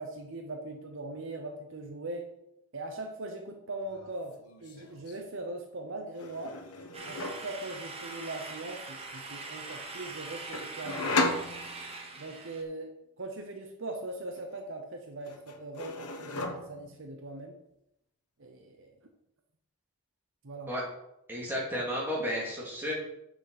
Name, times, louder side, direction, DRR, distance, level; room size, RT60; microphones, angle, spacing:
voice 1, 0.0-2.3 2.7-4.4 4.6-6.6 7.0-11.3 12.2-17.6 18.4-19.0 20.4-20.7, right 2 dB, 60° right, 4 dB, 0.8 m, -40 dB
sound 1, 3.8-4.1 4.4-5.2 6.2-7.5 10.5-12.1 14.3-15.0 15.2-17.0, left 3 dB, 90° left, 1.1 m, -35 dB
sound 2, 6.9-12.6, right 3 dB, 25° right, 1.0 m, -42 dB
voice 2, 21.3-22.9, equal, 10° right, -5 dB, 2.6 m, -32 dB
8.4 x 6.2 x 4.1 m, 0.84 s
head